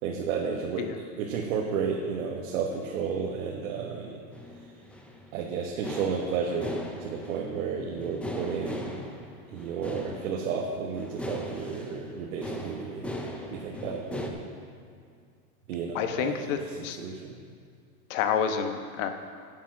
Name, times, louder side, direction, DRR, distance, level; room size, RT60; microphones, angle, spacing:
voice 1, 0.0-4.2 4.6-4.7 5.3-9.1 9.5-13.2 13.5-14.4 15.7-17.4, right 6 dB, 70° right, -1 dB, 1.5 m, -32 dB
sound 1, 4.3-14.3, left 1 dB, 5° left, 0.4 m, -39 dB
voice 2, 15.9-17.0 18.1-19.1, left 7 dB, 60° left, 7 dB, 1.2 m, -29 dB
12.0 x 7.4 x 6.2 m, 2.2 s
supercardioid pair, 140°, 43 cm